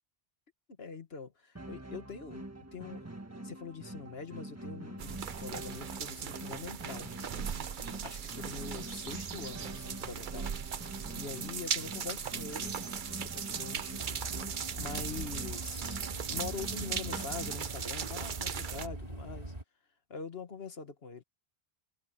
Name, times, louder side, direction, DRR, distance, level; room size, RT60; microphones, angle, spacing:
voice 1, 0.8-3.1 3.4-7.1 8.0-10.6 11.1-14.0 14.8-19.5 20.1-21.2, left 5 dB, 75° left, 1.9 m, -44 dB
sound 1, 1.5-17.5, right 1 dB, 15° right, 1.6 m, -45 dB
sound 2, 5.0-18.9, right 7 dB, 55° right, 0.9 m, -38 dB
sound 3, 14.0-19.6, right 1 dB, 40° right, 2.9 m, -43 dB
omnidirectional pair, 1.1 m